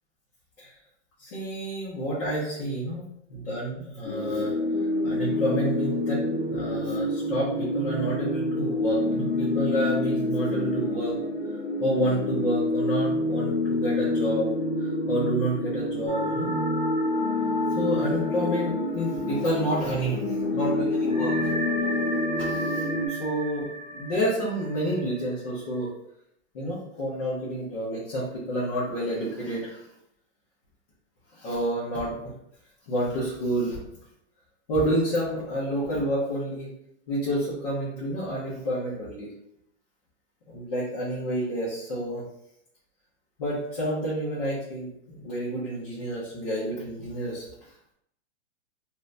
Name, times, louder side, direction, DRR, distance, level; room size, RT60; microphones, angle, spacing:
voice 1, 1.2-3.0 3.3-4.5 5.0-6.2 6.5-11.1 11.5-14.5 14.8-16.5 17.7-21.5 22.3-25.9 26.5-29.8 31.3-32.2 32.9-33.8 34.7-36.7 37.1-39.3 40.5-42.2 43.4-47.4, right 1 dB, 30° left, -9 dB, 0.8 m, -29 dB
sound 1, 4.0-23.1, left 2 dB, 55° left, 1.1 m, -28 dB
sound 2, 16.1-20.1 20.4-20.5 21.1-25.7, equal, ahead, 0.4 m, -35 dB
2.7 x 2.6 x 3.2 m, 0.76 s
supercardioid pair, 180°, 37 cm